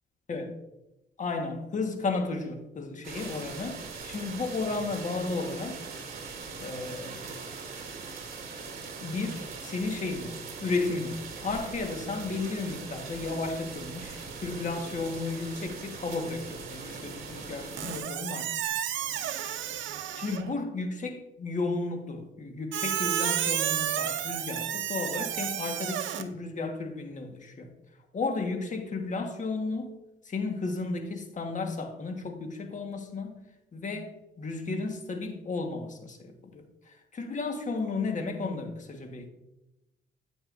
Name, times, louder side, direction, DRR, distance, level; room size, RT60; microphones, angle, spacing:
voice 1, 1.2-5.8 6.6-7.2 9.0-18.7 20.1-27.7 28.1-29.9 30.2-33.3 33.7-39.3, left 3 dB, 40° left, 4 dB, 1.4 m, -33 dB
sound 1, 3.0-18.0, right 4 dB, 50° right, 2.5 m, -41 dB
Squeak, 17.8-20.5 22.7-26.2, right 10 dB, 70° right, 0.7 m, -31 dB
9.4 x 8.6 x 2.6 m, 0.92 s
cardioid pair, 90°, 20 cm